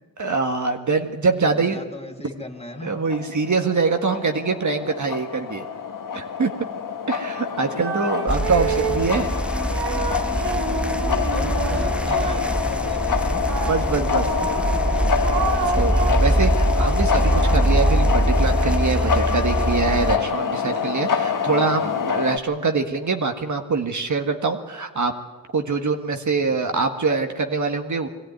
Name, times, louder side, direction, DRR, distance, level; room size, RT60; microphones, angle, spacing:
voice 1, 0.2-1.8 2.8-5.7 6.1-6.5 7.1-9.3 11.7-11.8 13.7-14.3 15.8-25.1 25.5-28.1, right 4 dB, 50° right, 5 dB, 1.7 m, -24 dB
voice 2, 1.5-3.0 10.9-13.4 14.4-15.0 21.4-22.0 26.3-26.8, left 2 dB, 15° left, 2 dB, 2.8 m, -38 dB
sound 1, 3.0-22.4, left 6 dB, 55° left, 1.3 m, -26 dB
sound 2, 7.7-9.2 9.7-12.6 13.5-16.4 16.9-20.5, right 5 dB, 85° right, 1.8 m, -31 dB
sound 3, 8.3-20.2, right 1 dB, 5° right, 0.9 m, -23 dB
21.5 x 15.0 x 9.4 m, 1.3 s
cardioid pair, 65°, 38 cm